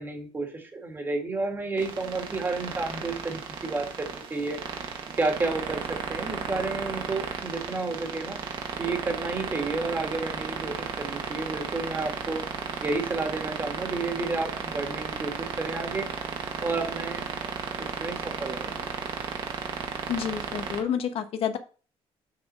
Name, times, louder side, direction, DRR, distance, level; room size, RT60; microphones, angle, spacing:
voice 1, 0.0-4.9 5.2-5.8 6.1-8.4 8.8-12.4 12.8-16.1 16.4-18.8, right 3 dB, 20° right, 3 dB, 1.9 m, -31 dB
sound 1, 1.8-20.8, right 6 dB, 50° right, 1.6 m, -34 dB
voice 2, 20.1-21.6, left 8 dB, 65° left, 9 dB, 0.9 m, -29 dB
7.3 x 4.3 x 6.1 m, 0.37 s
cardioid pair, 155°, 11 cm